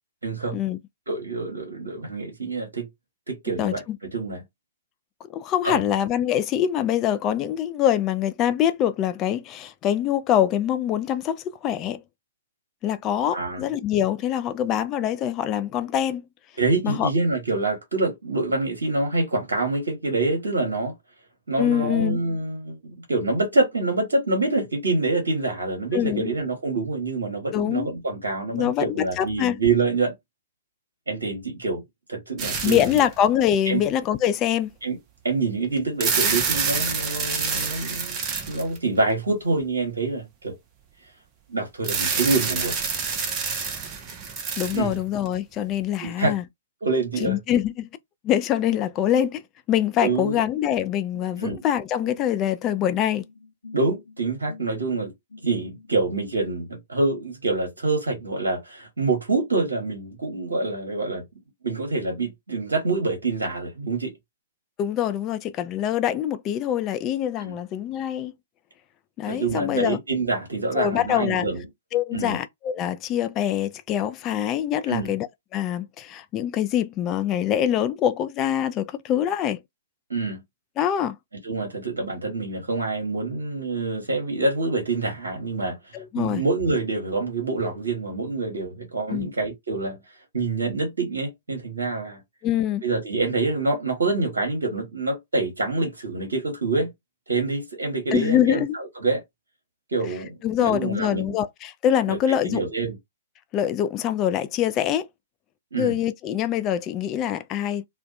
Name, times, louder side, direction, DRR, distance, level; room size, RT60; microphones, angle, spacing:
voice 1, 0.2-0.6 1.1-2.9 3.3-3.8 4.1-4.4 5.6-5.8 13.3-13.6 16.6-20.9 21.5-30.1 31.1-31.8 32.1-33.0 33.7-33.8 34.8-35.0 35.2-40.5 41.5-42.8 44.7-44.9 46.0-46.3 46.8-47.4 50.0-50.4 51.4-51.6 53.7-55.1 55.4-61.3 61.6-64.1 67.4-67.6 69.3-71.6 72.1-72.4 74.9-75.2 80.1-80.4 81.4-90.0 90.3-92.2 92.8-96.9 97.3-98.6 99.0-99.2 99.9-101.3 102.1-103.0 105.7-106.0, right 3 dB, 65° right, 0.9 m, -26 dB
voice 2, 3.6-4.0 5.3-12.0 12.8-16.2 16.8-17.1 21.6-22.2 25.9-26.3 27.5-27.9 28.5-29.6 32.6-34.7 44.6-46.4 47.2-47.9 48.2-49.4 49.7-53.2 64.8-68.3 69.2-70.0 70.7-71.5 71.9-75.3 75.5-79.6 80.8-81.2 85.9-86.4 89.1-89.3 92.4-92.8 98.1-98.8 100.4-102.6 103.5-105.1 105.8-107.9, left 10 dB, 25° left, 0.3 m, -24 dB
sound 1, 32.4-33.2 33.9-34.0 35.8-39.0 41.8-45.3, right 5 dB, 25° right, 0.7 m, -27 dB
sound 2, 52.8-55.9, left 4 dB, 65° left, 0.7 m, -46 dB
2.5 x 2.1 x 2.5 m
figure-of-eight pair, 115°, 0 cm